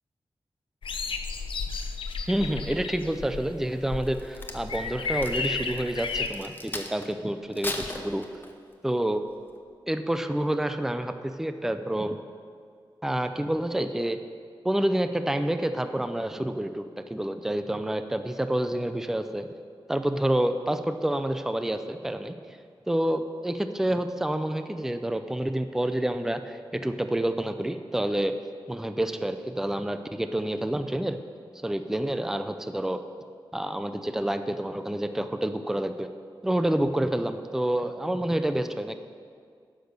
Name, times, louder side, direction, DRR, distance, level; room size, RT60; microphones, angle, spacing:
sound 1, 0.8-6.3, left 4 dB, 80° left, 0.6 m, -33 dB
voice 1, 2.3-8.2 8.8-9.2 9.9-12.2 13.0-14.2 14.6-16.8 17.1-19.5 19.9-22.4 22.9-28.3 28.7-31.2 31.6-33.0 33.5-36.1 36.4-38.9, right 1 dB, 5° right, 9 dB, 0.4 m, -28 dB
Crack, 4.0-7.1 7.5-8.7 9.3-9.5, left 2 dB, 25° left, 0.9 m, -38 dB
10.0 x 6.2 x 6.7 m, 2.1 s
wide cardioid pair, 130°, 9 cm